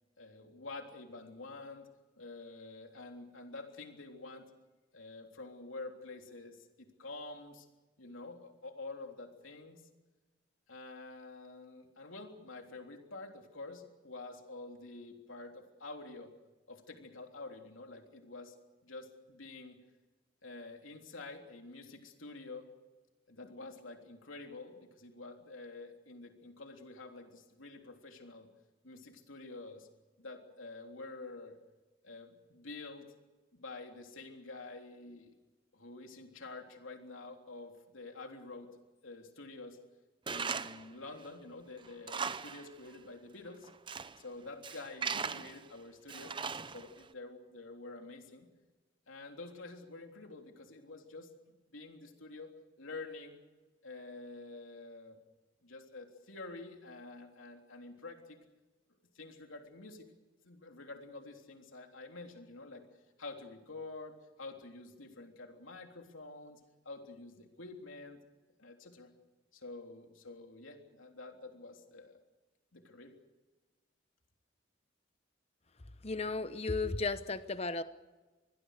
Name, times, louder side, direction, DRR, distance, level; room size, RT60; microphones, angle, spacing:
voice 1, 0.2-1.9 2.1-4.4 4.9-7.7 8.0-9.8 10.7-16.3 16.7-18.6 18.8-19.8 20.4-22.7 23.3-28.5 28.8-29.9 30.2-31.6 32.0-33.1 33.5-35.3 35.7-38.8 39.0-39.8 40.3-43.7 44.1-46.4 46.7-48.5 49.1-52.5 52.8-53.4 53.8-55.2 55.6-58.4 59.1-60.0 60.4-62.9 63.2-66.6 66.8-68.2 68.6-69.1 69.5-72.2 72.7-73.1, left 3 dB, 90° left, 3 dB, 3.5 m, -48 dB
Tools, 40.3-40.9 41.3-41.4 41.9-42.7 42.9-43.0 43.6-44.2 44.6-45.6 46.1-47.0, right 5 dB, 25° right, 0.7 m, -38 dB
voice 2, 76.0-77.8, left 3 dB, 30° left, 11 dB, 0.9 m, -34 dB
26.5 x 21.5 x 6.7 m, 1.2 s
head